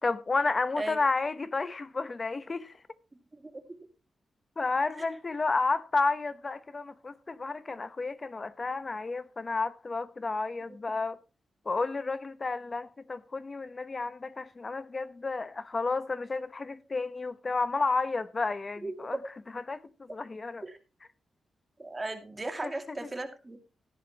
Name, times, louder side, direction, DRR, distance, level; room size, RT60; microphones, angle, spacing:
voice 1, 0.0-2.8 4.6-11.2 11.6-19.2 19.5-20.6 22.6-22.7, left 3 dB, 35° left, 1.0 m, -31 dB
voice 2, 3.3-3.6 5.0-5.1 18.8-19.2 20.1-20.2 20.6-20.8 21.8-23.6, right 2 dB, 25° right, 2.4 m, -37 dB
15.0 x 10.5 x 3.0 m
cardioid pair, 85°, 0 cm